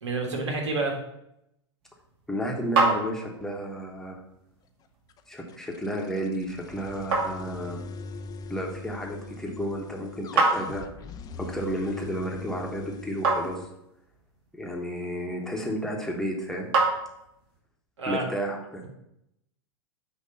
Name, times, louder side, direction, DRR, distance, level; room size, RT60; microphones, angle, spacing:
voice 1, 0.0-1.0 18.0-18.3, right 3 dB, 90° right, 1 dB, 1.6 m, -28 dB
sound 1, 1.8-17.6, right 3 dB, 60° right, 2.5 m, -32 dB
voice 2, 2.3-4.2 5.3-7.8 8.5-10.8 11.4-13.6 14.5-16.7 18.1-18.8, equal, 5° left, -1 dB, 1.1 m, -32 dB
sound 2, 5.1-13.7, left 3 dB, 25° left, 0.6 m, -41 dB
8.3 x 2.9 x 5.4 m, 0.82 s
hypercardioid pair, 110°, 14 cm